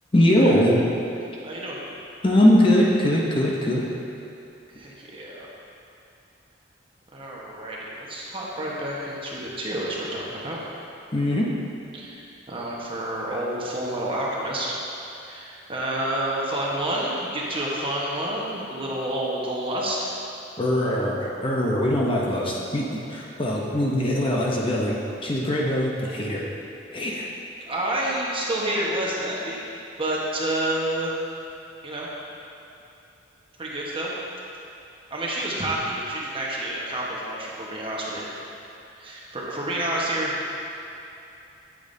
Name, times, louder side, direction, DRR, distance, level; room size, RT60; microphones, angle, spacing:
voice 1, 0.1-0.8 2.2-3.8 11.1-11.6 20.6-25.0 25.2-26.4 26.9-27.3, left 1 dB, 30° left, -3 dB, 0.8 m, -21 dB
voice 2, 1.4-1.8 4.7-5.5 7.1-10.6 11.9-12.2 12.5-14.8 15.2-20.1 27.6-29.6 30.0-31.1 31.8-32.1 33.6-34.1 35.1-38.2 39.0-40.6, right 1 dB, 30° right, -5 dB, 1.2 m, -29 dB
8.6 x 8.6 x 2.7 m, 2.8 s
head